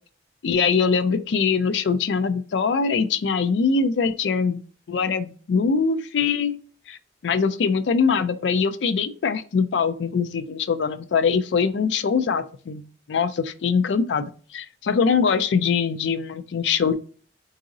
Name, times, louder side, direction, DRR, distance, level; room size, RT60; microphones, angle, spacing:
voice 1, 0.4-4.6 4.9-6.6 6.9-7.0 7.2-12.8 13.1-16.9, left 5 dB, 85° left, 12 dB, 0.4 m, -22 dB
3.8 x 2.7 x 2.5 m, 0.41 s
head